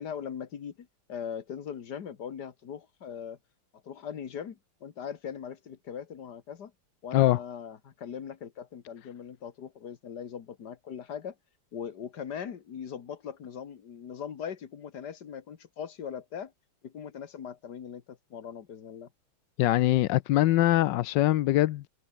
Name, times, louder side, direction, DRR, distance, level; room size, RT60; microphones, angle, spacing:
voice 1, 0.0-3.4 3.8-6.7 7.0-11.4 11.7-16.5 16.8-19.1, left 8 dB, 50° left, 2.0 m, -40 dB
voice 2, 19.6-21.9, left 15 dB, 70° left, 1.1 m, -23 dB
omnidirectional pair, 2.4 m